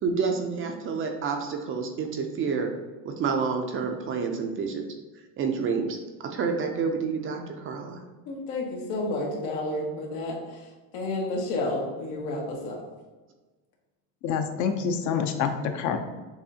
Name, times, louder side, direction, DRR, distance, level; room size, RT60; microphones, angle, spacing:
voice 1, 0.0-2.7 3.0-4.9 5.4-8.0, right 5 dB, 30° right, 4 dB, 0.4 m, -29 dB
voice 2, 8.2-10.7 10.9-12.8 14.8-14.9, left 2 dB, 85° left, -2 dB, 1.5 m, -31 dB
voice 3, 14.2-16.0, left 6 dB, 40° left, 7 dB, 0.5 m, -27 dB
6.8 x 2.6 x 2.7 m, 1.2 s
supercardioid pair, 120°, 46 cm